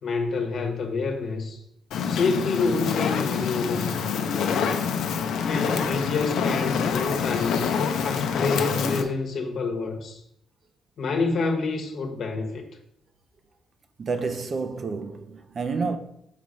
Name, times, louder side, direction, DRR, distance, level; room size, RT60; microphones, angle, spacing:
voice 1, 0.0-1.6 2.1-4.7 5.4-7.6 8.0-10.2 11.0-12.6, left 4 dB, 60° left, 1.1 m, -28 dB
Fire, 1.9-9.0, left 6 dB, 85° left, 0.6 m, -26 dB
voice 2, 14.0-16.0, right 4 dB, 45° right, 0.5 m, -29 dB
5.9 x 3.1 x 5.2 m
cardioid pair, 100°, 0 cm